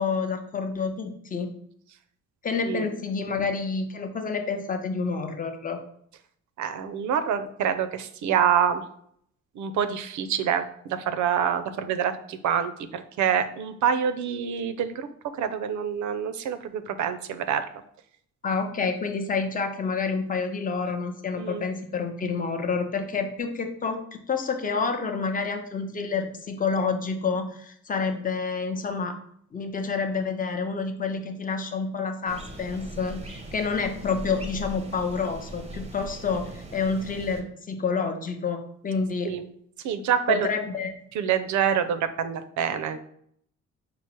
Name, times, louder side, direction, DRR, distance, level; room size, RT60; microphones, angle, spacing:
voice 1, 0.0-1.5 2.4-5.8 18.4-29.1 29.5-39.3 40.3-41.0, left 5 dB, 30° left, 5 dB, 0.7 m, -28 dB
voice 2, 6.6-8.8 9.6-15.1 15.4-17.7 21.3-21.7 39.3-39.5 39.8-40.5 41.1-43.0, right 8 dB, 75° right, 11 dB, 0.5 m, -26 dB
sound 1, 32.3-37.4, right 1 dB, 20° right, 0.6 m, -40 dB
4.6 x 2.0 x 4.4 m, 0.67 s
cardioid pair, 90°, 30 cm